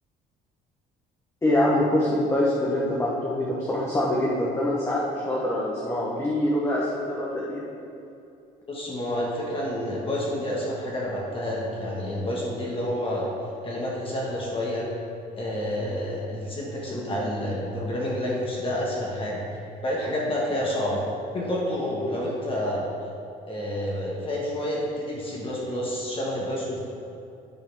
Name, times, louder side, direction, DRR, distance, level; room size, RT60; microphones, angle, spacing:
voice 1, 1.4-7.6 16.9-17.0, left 1 dB, 15° left, -5 dB, 1.2 m, -25 dB
voice 2, 8.7-13.3 13.6-14.9 15.3-19.4 19.8-21.0 21.3-22.8 23.5-26.8, left 1 dB, 30° left, -4 dB, 1.5 m, -29 dB
9.3 x 4.1 x 5.4 m, 2.6 s
cardioid pair, 110°, 17 cm